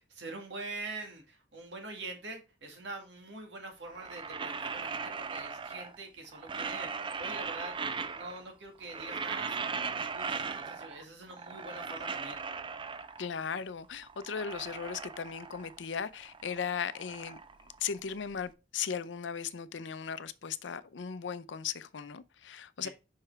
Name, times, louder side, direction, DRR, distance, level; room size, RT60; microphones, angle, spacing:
voice 1, 0.0-7.8 8.1-12.4 22.8-22.9, right 2 dB, 75° right, 1.9 m, -44 dB
sound 1, 3.8-6.0 6.3-8.5 8.8-11.0 11.3-13.4 13.8-15.9 16.1-18.3, right 5 dB, 30° right, 0.4 m, -38 dB
voice 2, 13.2-17.4 17.8-22.9, left 7 dB, 85° left, 0.6 m, -37 dB
5.7 x 5.5 x 3.3 m
head